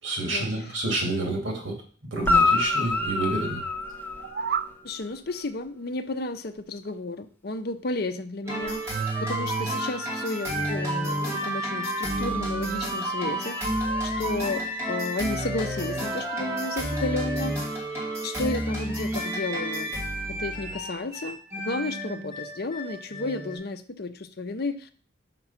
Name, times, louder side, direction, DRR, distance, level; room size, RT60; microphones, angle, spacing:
voice 1, 0.0-1.7 2.1-3.6, right 2 dB, 80° right, 1 dB, 2.8 m, -29 dB
Guitar, 2.2-4.8 8.6-8.7, left 3 dB, 10° left, 0.7 m, -25 dB
sound 1, 4.1-4.8, right 7 dB, 55° right, 0.3 m, -30 dB
voice 2, 4.8-13.8 14.0-17.6 18.2-19.9 20.3-24.9, left 2 dB, 55° left, 9 dB, 0.7 m, -32 dB
sound 2, 8.4-23.6, right 1 dB, 15° right, 2.6 m, -30 dB
5.9 x 5.7 x 5.7 m, 0.44 s
head